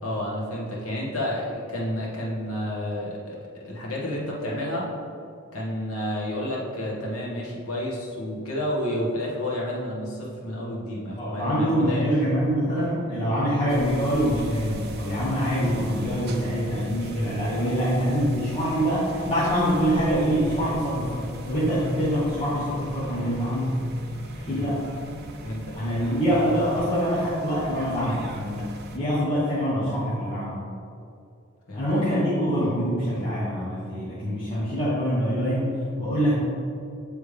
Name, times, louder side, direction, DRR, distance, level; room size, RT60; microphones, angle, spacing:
voice 1, 0.0-3.4 3.6-4.9 5.5-12.1 24.5-24.7 25.4-25.7 31.7-31.9, left 1 dB, 80° left, -4 dB, 1.5 m, -30 dB
voice 2, 11.2-23.8 24.4-24.9 25.7-30.5 31.7-36.4, equal, 25° left, -10 dB, 1.0 m, -25 dB
sound 1, 13.7-29.0, equal, 50° right, 0.5 m, -39 dB
8.4 x 3.4 x 3.3 m, 2.5 s
head